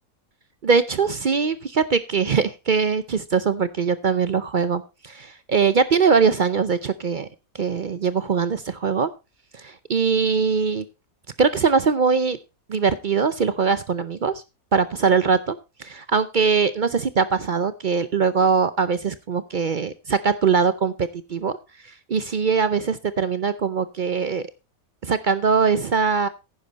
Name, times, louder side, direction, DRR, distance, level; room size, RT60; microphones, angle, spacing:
voice 1, 0.6-7.3 7.5-9.1 9.5-10.8 11.4-12.4 12.7-14.4 14.7-21.6 21.8-24.4 25.0-26.3, right 5 dB, 50° right, 14 dB, 0.6 m, -22 dB
10.5 x 10.0 x 4.0 m, 0.28 s
omnidirectional pair, 1.5 m